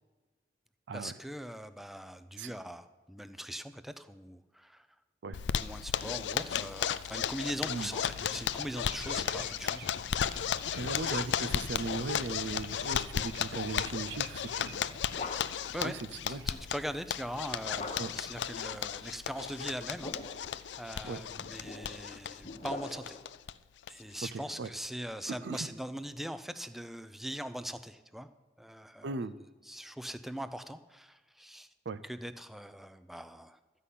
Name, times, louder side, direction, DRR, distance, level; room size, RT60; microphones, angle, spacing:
voice 1, 0.9-4.9 5.6-9.9 10.5-11.0 15.7-15.9 16.3-20.4 20.8-23.2 23.9-28.3 28.6-29.2 29.7-31.7 32.0-33.6, equal, ahead, 11 dB, 0.5 m, -41 dB
Zipper (clothing), 5.3-23.5 23.8-23.9 24.2-24.3 24.7-25.1, left 8 dB, 75° left, 0.4 m, -35 dB
sound 1, 8.2-15.2, right 4 dB, 60° right, 0.9 m, -50 dB
voice 2, 10.7-14.9 15.8-16.5 18.0-18.1 21.1-21.2 24.3-24.7 25.3-25.7 29.0-29.3 31.9-32.0, right 4 dB, 80° right, 12 dB, 0.5 m, -38 dB
sound 2, 14.6-15.8 17.8-18.4 19.7-20.6 21.3-23.3, left 3 dB, 40° left, 1.1 m, -43 dB
13.0 x 5.6 x 8.3 m, 1.3 s
head